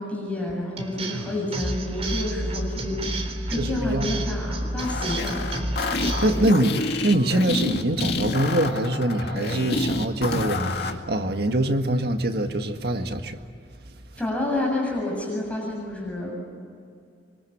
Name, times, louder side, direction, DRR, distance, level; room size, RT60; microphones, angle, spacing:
voice 1, 0.0-5.4 14.2-16.4, left 1 dB, 10° left, 7.4 m, -29 dB
sound 1, 0.8-6.5, right 1 dB, 35° right, 3.6 m, -30 dB
voice 2, 3.5-4.1 6.2-13.4, right 1 dB, 65° right, 1.8 m, -24 dB
sound 2, 4.8-11.0, left 2 dB, 65° left, 2.2 m, -28 dB
26.5 x 24.5 x 8.8 m
head